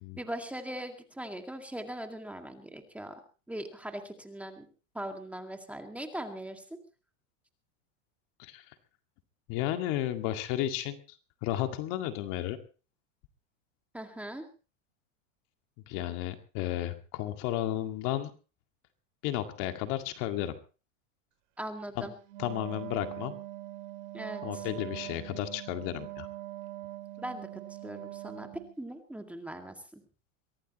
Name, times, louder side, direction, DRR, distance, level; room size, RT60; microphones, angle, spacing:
voice 1, 0.2-3.1 3.5-4.7 4.9-6.8 13.9-14.4 21.6-22.1 24.1-24.7 27.2-28.5 28.8-30.0, right 1 dB, 5° right, 5 dB, 2.1 m, -40 dB
voice 2, 9.5-11.0 11.4-12.6 15.9-18.3 19.2-20.5 22.0-22.1 22.4-23.4 24.4-26.3, left 13 dB, 55° left, 7 dB, 2.1 m, -33 dB
Wind instrument woodwind instrument, 22.3-28.8, right 17 dB, 65° right, 2.4 m, -42 dB
23.5 x 17.0 x 3.1 m, 0.35 s
supercardioid pair, 135°, 39 cm